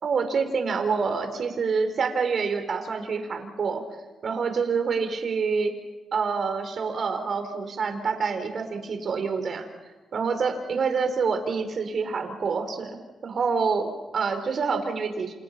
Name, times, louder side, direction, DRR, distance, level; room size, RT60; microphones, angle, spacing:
voice 1, 0.0-3.8 4.2-5.7 6.1-9.7 10.1-13.0 13.2-15.3, right 5 dB, 60° right, 7 dB, 4.4 m, -27 dB
29.0 x 28.0 x 5.9 m, 1.2 s
cardioid pair, 85°, 0 cm